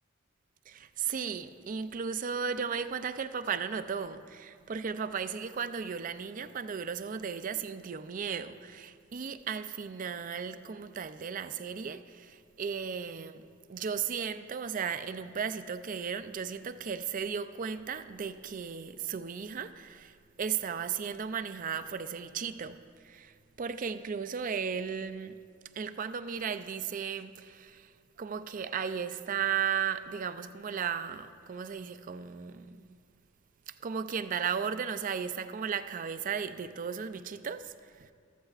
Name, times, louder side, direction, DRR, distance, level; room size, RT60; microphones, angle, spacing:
voice 1, 0.7-13.4 13.7-25.4 25.8-27.9 28.2-33.0 33.7-38.1, right 7 dB, 40° right, 0.4 m, -35 dB
14.5 x 13.5 x 2.4 m
head